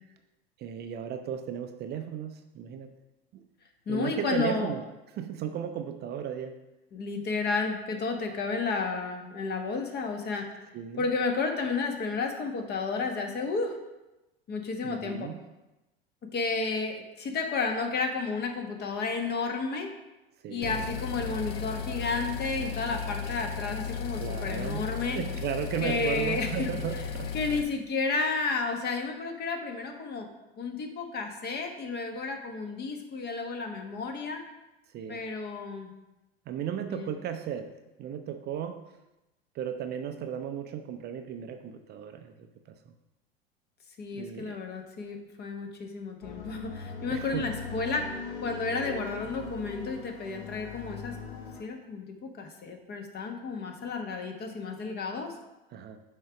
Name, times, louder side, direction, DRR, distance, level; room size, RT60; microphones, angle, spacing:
voice 1, 0.6-2.9 3.3-3.4 3.9-4.8 5.1-6.6 10.7-11.0 14.8-15.4 20.4-20.8 24.2-27.3 34.9-35.2 36.5-37.7 38.0-38.8 39.5-42.4 42.7-42.9 44.1-44.6 47.1-47.5 55.7-56.0, right 9 dB, 35° right, 7 dB, 0.5 m, -35 dB
voice 2, 3.9-4.7 6.9-10.5 11.0-13.8 14.5-15.3 16.3-19.9 20.5-25.2 25.8-26.7 27.3-30.3 30.6-34.4 35.1-35.9 36.9-37.1 44.0-48.1 48.4-51.2 51.6-55.3, left 4 dB, 35° left, 4 dB, 1.2 m, -32 dB
sound 1, 20.6-27.6, left 6 dB, 80° left, 0.7 m, -35 dB
sound 2, 46.2-51.6, left 4 dB, 60° left, 1.3 m, -40 dB
6.3 x 4.6 x 4.9 m, 0.99 s
figure-of-eight pair, 80°, 30 cm